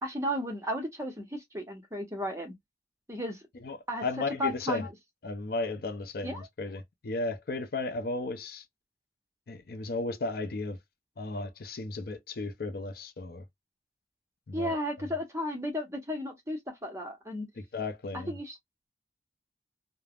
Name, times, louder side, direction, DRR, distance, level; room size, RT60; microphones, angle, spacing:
voice 1, 0.0-2.5 3.1-3.4 3.9-4.0 4.4-4.9 6.2-6.5 14.5-17.5 18.1-18.6, equal, 15° right, 0.8 m, -34 dB
voice 2, 3.6-4.9 5.2-8.6 9.5-10.8 11.2-13.4 14.5-14.8 17.7-18.4, left 3 dB, 60° left, 0.5 m, -34 dB
3.3 x 2.0 x 2.3 m
head